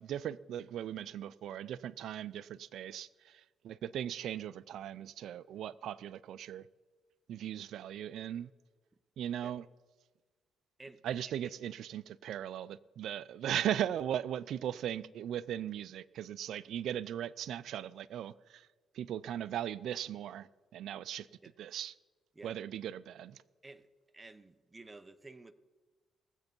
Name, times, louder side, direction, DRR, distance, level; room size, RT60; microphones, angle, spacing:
voice 1, 0.0-3.1 3.6-6.6 7.3-8.5 9.2-9.6 11.0-18.6 19.0-20.5 20.7-21.3 21.6-21.9 22.4-23.4, right 10 dB, 75° right, 0.4 m, -38 dB
voice 2, 10.8-11.5 21.4-21.5 22.3-22.5 23.6-23.9 24.1-25.5, right 2 dB, 20° right, 0.8 m, -52 dB
19.5 x 8.0 x 5.3 m
cardioid pair, 90°, 0 cm